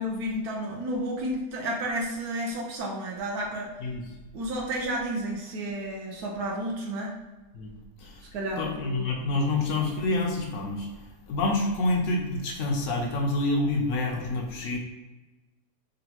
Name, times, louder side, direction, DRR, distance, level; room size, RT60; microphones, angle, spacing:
voice 1, 0.0-3.7 4.3-7.2 8.3-9.4, right 1 dB, 70° right, -2 dB, 1.1 m, -32 dB
voice 2, 8.6-10.9 11.3-14.8, left 2 dB, 70° left, 1 dB, 0.8 m, -27 dB
3.9 x 2.2 x 2.8 m, 1.2 s
omnidirectional pair, 1.8 m